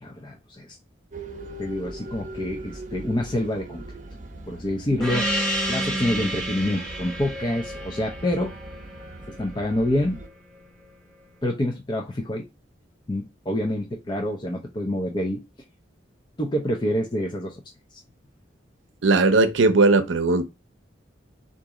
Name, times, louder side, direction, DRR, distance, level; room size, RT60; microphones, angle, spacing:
voice 1, 0.0-0.8 1.6-3.8 4.5-5.3 5.7-8.5 9.4-10.2 11.4-12.4 13.1-15.4 16.4-17.6 17.9-18.0, left 1 dB, 25° left, 0.5 m, -27 dB
sound 1, 1.1-10.3, right 1 dB, 40° right, 0.8 m, -40 dB
Gong, 5.0-10.0, right 1 dB, 5° left, 0.9 m, -30 dB
voice 2, 19.0-20.4, right 3 dB, 85° right, 0.6 m, -18 dB
3.9 x 2.6 x 4.7 m
head